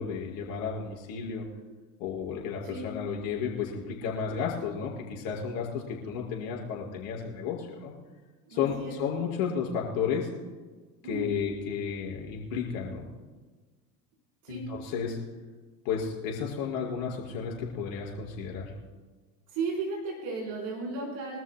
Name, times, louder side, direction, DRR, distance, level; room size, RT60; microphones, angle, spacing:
voice 1, 0.0-1.4 2.0-7.9 8.5-10.3 11.1-13.1 14.5-15.2 15.8-18.7, left 6 dB, 65° left, -2 dB, 5.2 m, -32 dB
voice 2, 8.4-9.0 11.0-11.3 14.4-14.6 19.5-21.4, right 3 dB, 60° right, -2 dB, 4.3 m, -34 dB
24.5 x 13.5 x 2.2 m, 1.3 s
hypercardioid pair, 70°, 50 cm